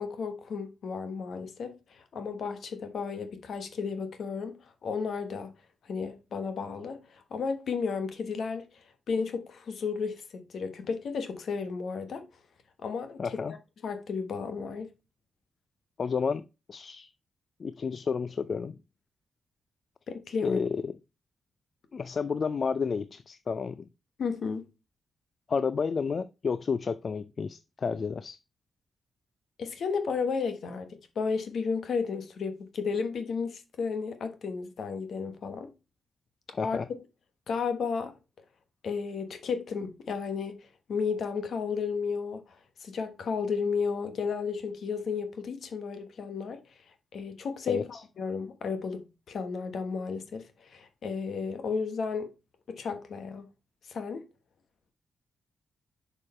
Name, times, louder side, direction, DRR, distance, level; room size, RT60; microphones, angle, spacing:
voice 1, 0.0-5.5 5.9-8.6 9.1-12.2 12.8-13.4 13.8-14.9 20.1-20.6 24.2-24.7 29.6-35.7 36.6-36.8 37.5-38.1 38.8-40.6 40.9-42.4 42.8-46.6 47.1-52.3 52.7-53.5 53.9-54.2, left 5 dB, 70° left, 1.2 m, -33 dB
voice 2, 13.2-13.5 16.0-17.1 17.6-18.8 20.4-21.0 21.9-23.9 25.5-28.4 36.5-36.9 47.7-48.0, left 5 dB, 55° left, 0.3 m, -31 dB
6.5 x 4.9 x 4.2 m
cardioid pair, 65°, 0 cm